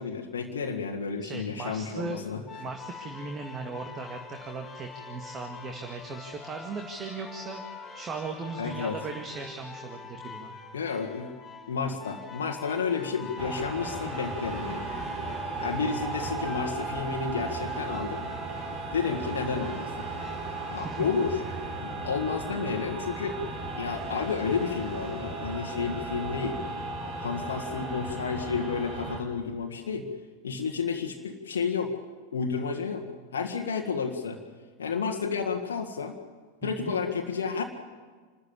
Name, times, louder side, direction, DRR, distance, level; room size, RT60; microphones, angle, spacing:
voice 1, 0.0-2.4 8.6-9.0 10.7-11.3 11.7-14.9 15.6-18.2 18.9-21.4 21.8-23.4 23.8-26.6 27.2-30.1 30.4-32.0 32.3-33.0 33.3-34.4 34.8-36.2 36.6-37.6, left 5 dB, 65° left, 2 dB, 1.7 m, -31 dB
voice 2, 1.2-2.3 2.6-10.5 15.7-15.9 20.7-21.0 36.6-37.0, right 4 dB, 25° right, 4 dB, 2.0 m, -38 dB
sound 1, 2.5-21.3, left 5 dB, 20° left, 4.4 m, -45 dB
sound 2, 12.6-27.6, right 2 dB, 85° right, 6.5 m, -52 dB
sound 3, 13.4-29.2, right 3 dB, 40° right, 4.6 m, -35 dB
28.0 x 13.0 x 8.9 m, 1.5 s
figure-of-eight pair, 90°, 0 cm